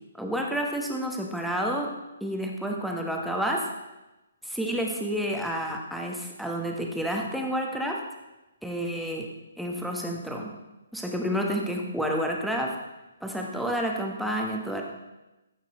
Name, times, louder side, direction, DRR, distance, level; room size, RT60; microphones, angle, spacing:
voice 1, 0.2-1.9 2.2-3.7 4.4-8.0 8.6-9.3 9.6-10.5 10.9-12.7 13.2-14.8, equal, ahead, -1 dB, 1.2 m, -29 dB
14.0 x 5.9 x 4.2 m, 1.0 s
figure-of-eight pair, 130°, 0 cm